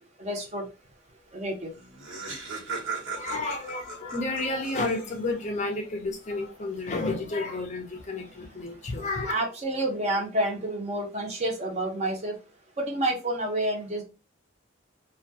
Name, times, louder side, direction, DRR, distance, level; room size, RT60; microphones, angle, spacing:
voice 1, 0.2-0.6 1.3-1.7 9.2-12.4 12.8-14.0, right 1 dB, 35° right, 0.6 m, -29 dB
Laughter, 1.4-1.5 1.7-5.4, right 4 dB, 90° right, 1.1 m, -37 dB
voice 2, 3.1-9.3, left 2 dB, 35° left, 0.5 m, -31 dB
2.2 x 2.2 x 2.6 m
head